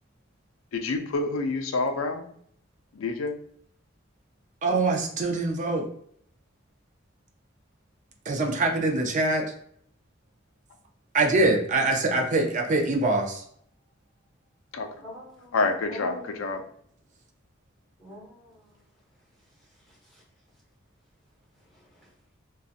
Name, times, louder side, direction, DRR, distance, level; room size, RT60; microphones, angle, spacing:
voice 1, 0.7-2.3 2.9-3.4 14.7-14.9 15.5-16.6, left 3 dB, 75° left, 6 dB, 0.4 m, -27 dB
voice 2, 4.6-5.9 8.3-9.4 11.1-13.4, right 2 dB, 40° right, 2 dB, 0.5 m, -24 dB
voice 3, 15.0-15.6 15.9-16.4 18.0-18.7 20.1-20.2 21.7-22.1, left 1 dB, ahead, -7 dB, 1.1 m, -44 dB
2.6 x 2.2 x 2.4 m, 0.65 s
head